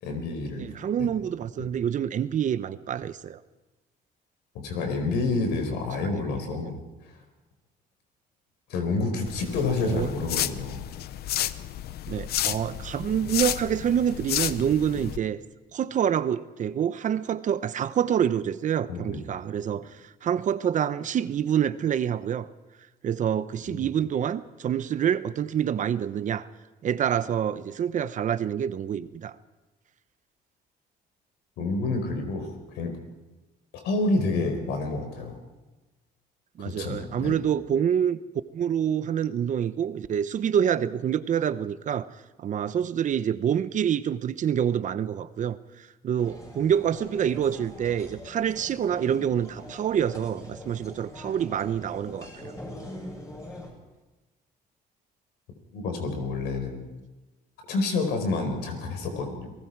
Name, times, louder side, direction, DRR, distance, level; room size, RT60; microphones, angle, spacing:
voice 1, 0.0-0.7 1.0-1.1 1.6-1.7 4.6-6.8 8.7-10.8 18.9-19.2 23.7-23.9 31.6-32.5 32.7-33.0 33.7-35.3 36.6-37.4 55.7-56.8 57.7-59.5, left 3 dB, 85° left, 5 dB, 4.6 m, -28 dB
voice 2, 0.6-3.4 6.4-6.6 9.8-10.1 12.1-15.4 15.7-19.9 20.2-22.5 23.0-26.5 26.8-29.3 36.6-38.2 38.5-42.1 42.4-52.6, right 9 dB, 50° right, 14 dB, 0.9 m, -27 dB
sound 1, 9.3-15.2, left 12 dB, 70° left, 0.8 m, -32 dB
sound 2, 46.2-53.7, left 1 dB, 20° left, 7.9 m, -43 dB
29.0 x 19.0 x 4.7 m, 1.1 s
cardioid pair, 110°, 17 cm